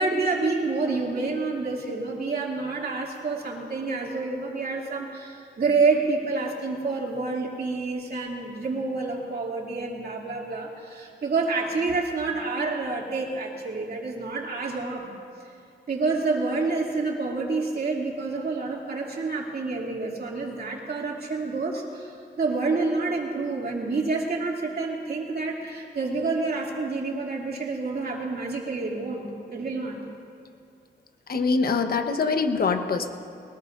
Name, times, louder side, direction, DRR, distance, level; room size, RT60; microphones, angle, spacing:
voice 1, 0.0-15.1 15.9-22.1 22.4-30.0, right 3 dB, 60° right, -2 dB, 2.7 m, -28 dB
voice 2, 31.3-33.1, left 4 dB, 60° left, 6 dB, 1.1 m, -24 dB
22.0 x 20.0 x 2.6 m, 2.4 s
cardioid pair, 80°, 18 cm